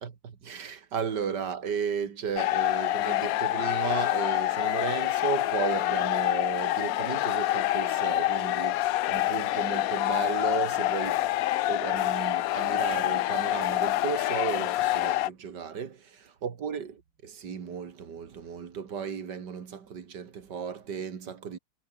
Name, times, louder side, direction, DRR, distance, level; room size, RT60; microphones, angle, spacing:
voice 1, 0.2-11.4 11.7-21.6, right 7 dB, 80° right, 2.5 m, -35 dB
sound 1, 2.4-15.3, left 15 dB, 70° left, 0.9 m, -27 dB
omnidirectional pair, 1.8 m